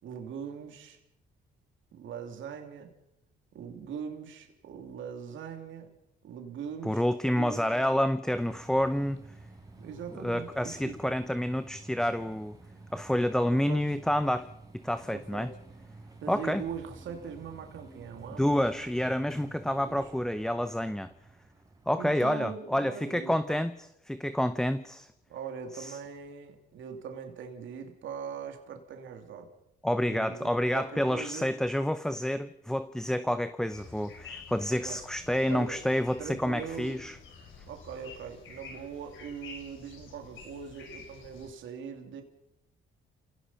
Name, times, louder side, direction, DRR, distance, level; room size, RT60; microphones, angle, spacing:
voice 1, 0.0-1.0 1.9-2.9 3.5-5.9 6.2-7.0 7.3-8.0 9.8-11.1 13.5-13.8 15.1-15.5 16.2-18.4 19.6-20.1 22.0-23.6 25.3-29.5 30.1-31.5 34.8-35.0 35.5-35.8 36.2-37.0 37.7-42.2, right 7 dB, 75° right, 4 dB, 2.9 m, -41 dB
voice 2, 6.8-9.2 10.1-12.6 12.9-14.5 14.8-15.5 16.3-16.6 18.4-21.1 21.9-25.1 25.8-26.0 29.8-37.2, equal, 5° left, 12 dB, 0.7 m, -29 dB
sound 1, 8.3-22.1, right 2 dB, 20° right, 4.1 m, -51 dB
sound 2, 33.7-41.5, left 5 dB, 80° left, 4.7 m, -49 dB
29.0 x 17.5 x 5.7 m, 0.81 s
cardioid pair, 90°, 20 cm